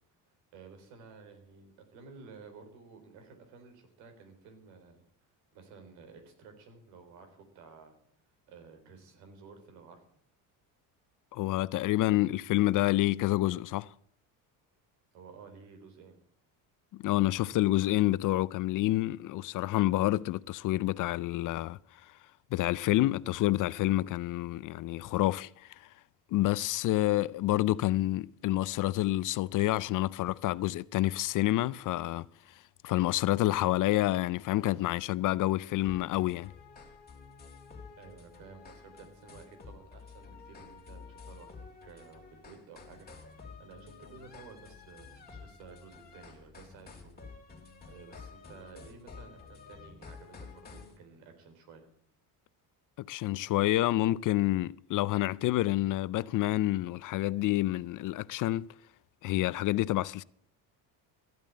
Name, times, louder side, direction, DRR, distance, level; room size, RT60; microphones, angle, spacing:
voice 1, 0.5-5.0 5.5-8.0 8.5-10.1 15.1-16.2 38.0-47.3 47.9-51.9, right 5 dB, 90° right, 4.0 m, -53 dB
voice 2, 11.3-13.9 16.9-22.1 22.5-25.9 26.3-32.3 32.8-36.5 53.0-58.7 59.2-60.2, left 16 dB, 50° left, 0.5 m, -28 dB
sound 1, 35.8-51.0, left 5 dB, 20° left, 3.0 m, -51 dB
14.0 x 9.0 x 8.6 m
cardioid pair, 125°, 42 cm